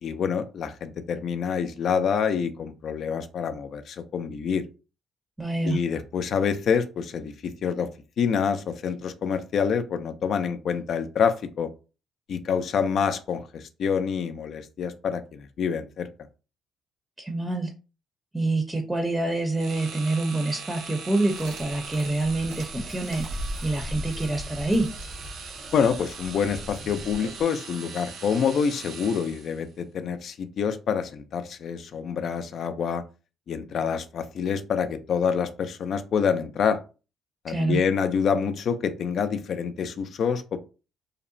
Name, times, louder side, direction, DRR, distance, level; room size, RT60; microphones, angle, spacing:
voice 1, 0.0-4.7 5.6-7.9 8.2-11.7 12.3-16.1 25.7-33.0 33.5-36.8 37.4-40.6, left 6 dB, 60° left, 9 dB, 0.4 m, -27 dB
voice 2, 5.4-5.8 17.2-17.7 18.3-24.9 37.5-37.8, right 2 dB, 10° right, 4 dB, 0.6 m, -26 dB
sound 1, 19.5-29.7, right 5 dB, 65° right, 0.5 m, -41 dB
sound 2, 21.3-27.5, equal, 80° right, 0.9 m, -39 dB
2.7 x 2.1 x 2.5 m, 0.32 s
supercardioid pair, 65°, 0 cm